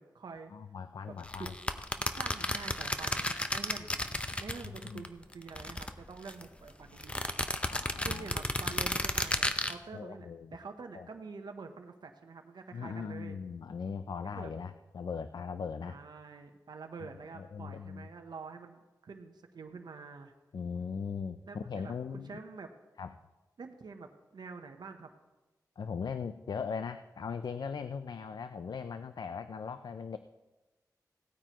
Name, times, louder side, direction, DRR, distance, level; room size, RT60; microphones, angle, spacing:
voice 1, 0.0-0.5 1.1-1.8 2.2-4.0 4.4-7.3 8.0-13.4 14.3-14.5 15.9-20.3 21.5-21.9 22.2-22.7 23.6-25.1, right 4 dB, 90° right, 5 dB, 0.8 m, -47 dB
voice 2, 0.5-1.5 4.7-5.0 7.6-8.3 8.7-8.8 9.9-10.6 10.9-11.1 12.7-16.0 17.3-18.1 20.5-22.4 23.0-23.1 25.8-30.2, left 6 dB, 80° left, 10 dB, 0.4 m, -39 dB
sound 1, 1.3-5.1 5.3-6.4 7.0-9.7, left 1 dB, 15° left, 0.7 m, -33 dB
17.5 x 9.1 x 3.0 m, 1.1 s
wide cardioid pair, 65°, 7 cm